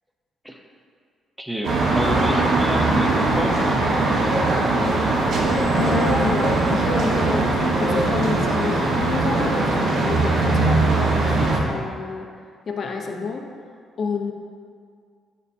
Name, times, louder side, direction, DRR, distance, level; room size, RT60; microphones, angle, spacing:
voice 1, 1.4-3.6, equal, 5° right, 2 dB, 0.7 m, -29 dB
sound 1, 1.6-11.6, right 2 dB, 60° right, 1.1 m, -20 dB
voice 2, 5.7-7.5 7.8-12.3 12.7-13.4 14.0-14.3, left 4 dB, 50° left, 2 dB, 0.7 m, -29 dB
8.5 x 5.4 x 2.7 m, 2.1 s
cardioid pair, 90°, 0 cm